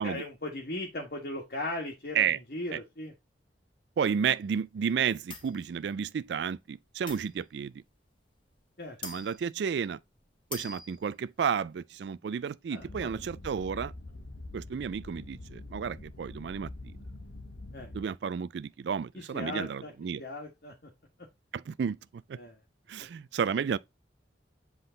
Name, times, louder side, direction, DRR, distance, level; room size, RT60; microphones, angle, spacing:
voice 1, 0.0-3.1 8.8-9.0 12.7-13.1 17.7-17.9 19.1-19.9 20.2-20.9 22.4-22.6, left 2 dB, 55° left, 1.5 m, -38 dB
voice 2, 4.0-7.8 9.0-10.0 10.5-13.9 14.5-16.7 17.9-20.2 21.5-22.0 22.3-22.4 22.9-23.8, right 7 dB, 70° right, 0.3 m, -32 dB
sound 1, 5.3-5.6 7.1-7.7 8.5-8.6 9.0-9.5 9.9-10.0 10.3-11.1, left 4 dB, 30° left, 1.5 m, -43 dB
Low Rumble, 12.8-18.0, left 2 dB, 75° left, 1.2 m, -45 dB
7.9 x 3.7 x 3.9 m
head